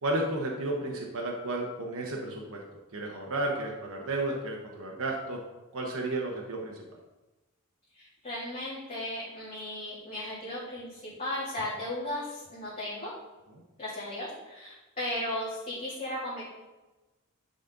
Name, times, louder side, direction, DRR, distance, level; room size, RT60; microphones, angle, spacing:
voice 1, 0.0-2.6 2.9-5.4 5.7-6.8, right 2 dB, 65° right, -1 dB, 1.0 m, -32 dB
voice 2, 7.9-13.1 13.8-16.4, left 1 dB, 30° left, -12 dB, 2.8 m, -36 dB
10.5 x 4.2 x 3.9 m, 1.1 s
head